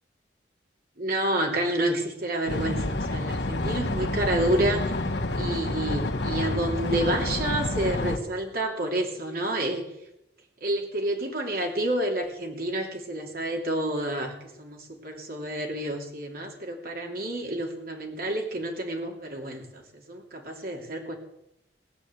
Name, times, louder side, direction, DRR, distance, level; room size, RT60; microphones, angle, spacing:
voice 1, 1.0-4.9 5.3-9.8 10.6-14.3 14.6-19.8 20.1-21.2, right 1 dB, 55° right, 1 dB, 2.9 m, -29 dB
sound 1, 2.5-8.2, left 2 dB, 75° left, 1.4 m, -29 dB
18.5 x 8.7 x 8.3 m, 0.84 s
head